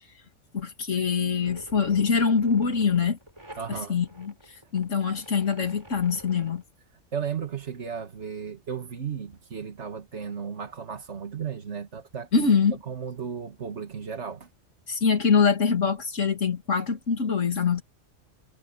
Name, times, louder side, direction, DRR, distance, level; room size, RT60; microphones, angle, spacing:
voice 1, 0.5-3.2 3.7-4.3 4.7-6.6 12.3-12.8 14.9-17.8, left 6 dB, 75° left, 2.7 m, -24 dB
sound 1, 1.4-6.6, right 1 dB, 20° right, 5.1 m, -46 dB
voice 2, 3.6-4.0 7.1-12.5 12.9-14.5, right 7 dB, 65° right, 2.0 m, -35 dB
omnidirectional pair, 1.3 m